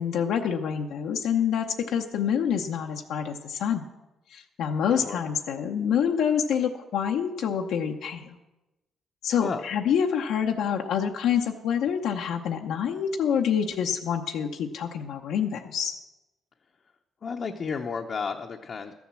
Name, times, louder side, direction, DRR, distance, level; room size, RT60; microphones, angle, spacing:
voice 1, 0.0-3.8 4.3-8.4 9.2-15.9, left 8 dB, 80° left, 2 dB, 0.8 m, -27 dB
voice 2, 17.2-18.9, left 5 dB, 50° left, 2 dB, 0.8 m, -32 dB
13.0 x 7.2 x 7.4 m, 1.0 s
cardioid pair, 90°, 0 cm